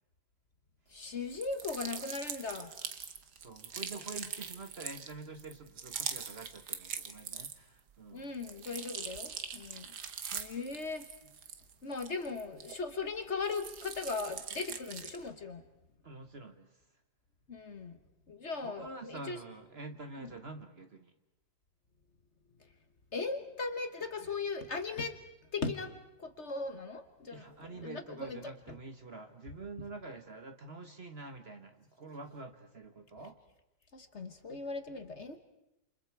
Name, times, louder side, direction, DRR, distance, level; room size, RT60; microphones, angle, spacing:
voice 1, 0.9-2.7 4.2-4.3 8.1-9.9 10.3-11.1 11.8-15.6 17.5-18.0 18.3-19.4 20.2-20.3 23.1-25.2 25.5-28.4 33.9-35.4, left 4 dB, 45° left, 8 dB, 1.5 m, -38 dB
sound 1, 1.3-7.8 8.2-13.1 13.4-15.3, right 7 dB, 70° right, 1.9 m, -42 dB
voice 2, 3.4-8.3 16.0-16.8 18.6-21.1 27.3-33.4, right 3 dB, 40° right, 7 dB, 1.4 m, -47 dB
28.5 x 28.0 x 4.7 m, 0.91 s
omnidirectional pair, 1.8 m